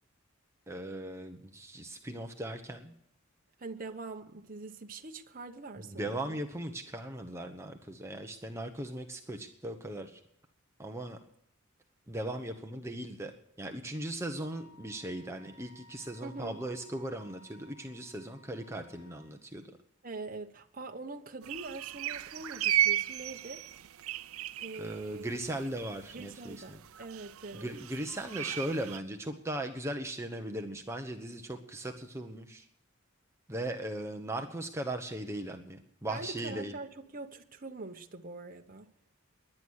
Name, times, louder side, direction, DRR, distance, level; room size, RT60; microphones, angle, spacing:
voice 1, 0.7-2.9 5.7-10.2 10.8-11.2 12.1-13.3 13.6-19.7 24.7-26.8 27.5-32.7 33.5-36.7, right 1 dB, 15° right, 1.0 m, -38 dB
voice 2, 3.6-6.4 16.2-16.6 20.0-23.7 24.6-25.3 26.1-27.8 36.1-38.9, right 3 dB, 40° right, 1.1 m, -43 dB
Wind instrument woodwind instrument, 14.3-19.3, left 2 dB, 80° left, 6.6 m, -59 dB
sound 1, 21.4-29.0, right 12 dB, 80° right, 0.5 m, -35 dB
19.5 x 11.5 x 6.5 m
head